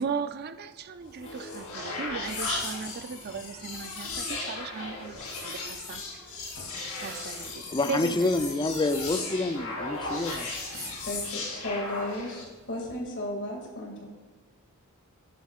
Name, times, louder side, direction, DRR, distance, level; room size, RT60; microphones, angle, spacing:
voice 1, 0.0-6.0 7.0-8.5, right 5 dB, 45° right, 11 dB, 0.4 m, -37 dB
sound 1, 1.0-12.5, left 3 dB, 75° left, 2.9 m, -36 dB
sound 2, 2.0-13.0, right 3 dB, 60° right, 2.2 m, -53 dB
voice 2, 7.7-10.5, left 2 dB, 20° left, 9 dB, 0.4 m, -27 dB
voice 3, 11.0-14.1, left 1 dB, 55° left, 0 dB, 2.2 m, -34 dB
10.5 x 9.2 x 2.4 m, 1.3 s
head